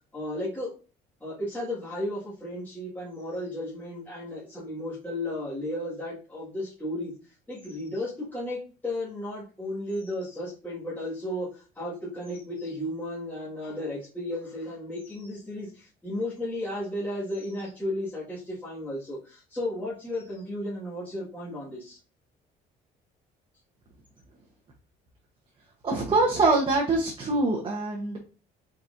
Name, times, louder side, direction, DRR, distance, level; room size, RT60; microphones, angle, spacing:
voice 1, 0.1-0.7 1.2-7.1 7.5-22.0, left 1 dB, 10° left, -9 dB, 1.8 m, -34 dB
voice 2, 25.8-28.2, right 3 dB, 30° right, 0 dB, 1.0 m, -24 dB
4.2 x 3.9 x 2.6 m, 0.34 s
cardioid pair, 110°, 17 cm